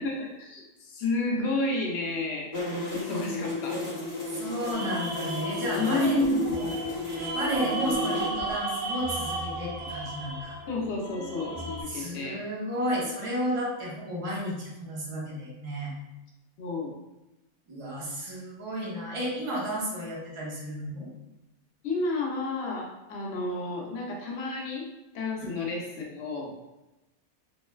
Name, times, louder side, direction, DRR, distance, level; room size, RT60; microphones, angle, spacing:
voice 1, 0.0-2.5 2.9-3.8 5.7-6.7 10.7-12.4 16.6-16.9 21.8-24.9 25.1-26.5, left 2 dB, 65° left, -1 dB, 0.7 m, -30 dB
sound 1, 2.5-8.3, left 2 dB, 30° left, 0.9 m, -33 dB
voice 2, 4.3-6.7 7.3-10.6 11.9-15.9 17.7-21.1, equal, 45° right, -5 dB, 0.4 m, -32 dB
sound 2, 4.7-11.8, right 2 dB, 80° right, 1.2 m, -35 dB
3.0 x 2.1 x 2.2 m, 0.99 s
omnidirectional pair, 1.5 m